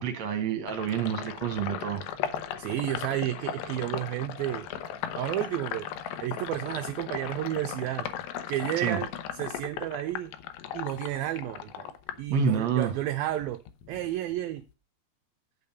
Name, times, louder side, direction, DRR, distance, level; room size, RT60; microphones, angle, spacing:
voice 1, 0.0-2.0 8.8-9.0 12.3-12.9, right 7 dB, 65° right, 1.8 m, -28 dB
Sink (filling or washing), 0.7-12.9 13.3-14.7, left 9 dB, 75° left, 2.3 m, -37 dB
voice 2, 2.6-4.7 5.2-5.9 6.2-8.1 8.5-9.1 9.3-10.3 10.7-11.9 12.2-13.6 13.9-14.6, right 13 dB, 85° right, 2.0 m, -31 dB
9.3 x 6.8 x 5.5 m
omnidirectional pair, 5.0 m